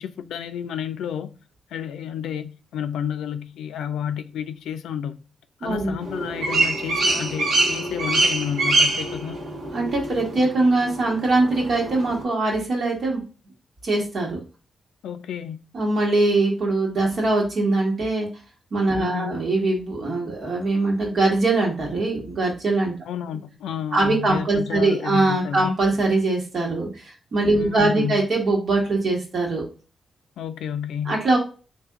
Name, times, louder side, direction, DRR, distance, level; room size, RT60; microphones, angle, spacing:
voice 1, 0.0-1.3 1.7-5.2 5.6-9.4 15.0-15.6 18.9-19.4 23.1-25.7 27.5-28.2 30.4-31.2, left 9 dB, 85° left, 0.3 m, -31 dB
voice 2, 5.6-5.9 9.7-13.2 13.8-14.4 15.7-18.3 18.7-22.9 23.9-29.7 31.0-31.4, right 2 dB, 65° right, 1.5 m, -22 dB
sound 1, 6.0-12.2, right 2 dB, 85° right, 1.2 m, -25 dB
3.5 x 2.6 x 3.5 m
supercardioid pair, 45°, 0 cm